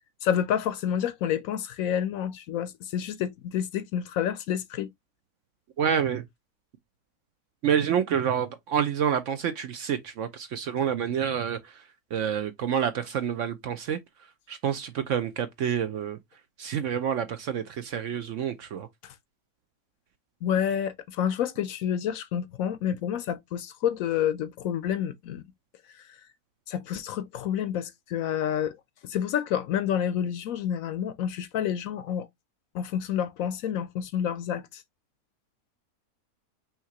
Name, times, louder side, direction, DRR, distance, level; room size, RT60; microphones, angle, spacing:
voice 1, 0.2-4.9 19.0-19.1 20.4-25.4 26.1-26.2 26.7-28.8 29.0-32.3 32.7-34.8, left 9 dB, 70° left, 0.9 m, -29 dB
voice 2, 5.8-6.2 7.6-11.8 12.1-14.0 14.5-16.2 16.6-18.9, right 8 dB, 65° right, 0.8 m, -28 dB
5.7 x 2.9 x 2.8 m
omnidirectional pair, 1.6 m